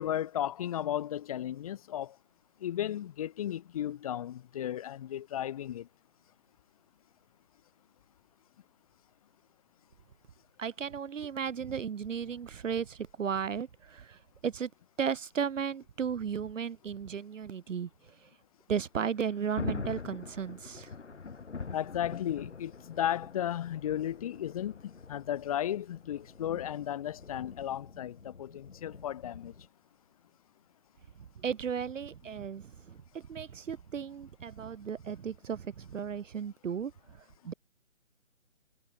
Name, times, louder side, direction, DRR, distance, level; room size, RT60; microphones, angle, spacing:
voice 1, 0.0-2.2 2.6-5.9 21.7-29.5, left 11 dB, 25° left, 1.7 m, -34 dB
voice 2, 10.6-14.7 15.0-17.9 18.2-18.3 18.7-20.9 31.4-36.9 37.2-37.5, right 7 dB, 70° right, 0.6 m, -35 dB
Thunder, 19.1-29.7, left 5 dB, 60° left, 7.8 m, -44 dB
figure-of-eight pair, 145°, 40 cm